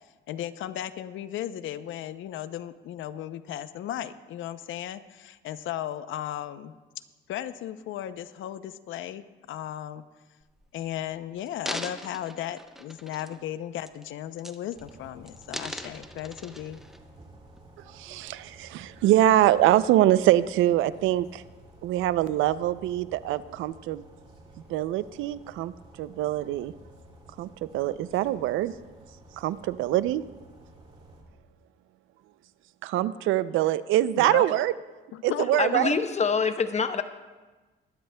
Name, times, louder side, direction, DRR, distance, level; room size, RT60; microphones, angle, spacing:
voice 1, 0.3-6.8 7.3-10.0 10.7-16.8 34.2-34.5 35.1-35.5 35.8-35.9, left 11 dB, 80° left, 13 dB, 0.6 m, -35 dB
sound 1, 10.4-10.8 11.4-13.5 13.8-14.1 14.4-14.9 15.3-17.0 17.6-17.7, equal, ahead, 0.8 m, -40 dB
sound 2, 14.7-31.2, right 1 dB, 30° right, 2.4 m, -52 dB
voice 2, 17.9-21.4 21.8-24.0 24.7-25.7 26.0-26.7 27.4-28.7 29.4-30.3 32.8-34.7 35.2-35.9, right 14 dB, 90° right, 16 dB, 0.4 m, -24 dB
voice 3, 35.6-37.0, left 5 dB, 35° left, 9 dB, 0.8 m, -25 dB
22.5 x 11.5 x 2.2 m, 1.3 s
cardioid pair, 90°, 20 cm